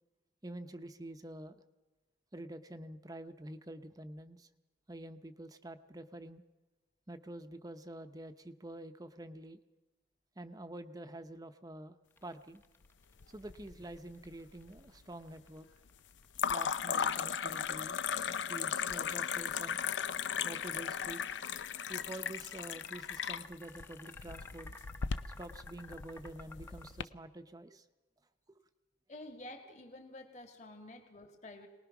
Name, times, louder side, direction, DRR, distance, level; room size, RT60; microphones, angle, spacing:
voice 1, 0.4-1.6 2.3-4.5 4.9-6.4 7.1-9.6 10.4-12.6 13.3-15.7 16.5-18.0 18.5-19.8 20.4-21.2 21.9-24.7 25.4-27.9 28.5-28.6, right 1 dB, 20° right, 8 dB, 0.7 m, -47 dB
sound 1, 12.1-19.4 20.9-26.9, left 2 dB, 10° left, 0.8 m, -54 dB
sound 2, 13.2-14.0 14.3-14.9 16.3-27.0, left 7 dB, 90° left, 0.6 m, -37 dB
voice 2, 29.1-31.7, left 1 dB, 40° left, 3 dB, 2.3 m, -50 dB
23.0 x 19.5 x 6.0 m, 1.2 s
head